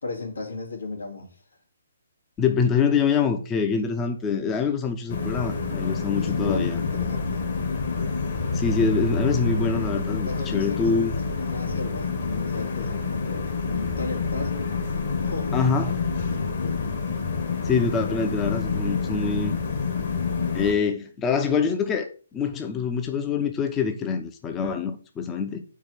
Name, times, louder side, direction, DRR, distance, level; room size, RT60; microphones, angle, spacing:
voice 1, 0.0-1.4 6.0-7.4 10.2-14.7 15.2-15.7 16.0-17.0, left 3 dB, 90° left, 2.6 m, -35 dB
voice 2, 2.4-6.8 8.5-11.1 15.5-15.9 17.6-19.5 20.5-25.6, left 6 dB, 15° left, 0.7 m, -25 dB
sound 1, 5.1-20.7, left 4 dB, 55° left, 1.9 m, -27 dB
4.7 x 4.6 x 6.1 m
hypercardioid pair, 145°, 0 cm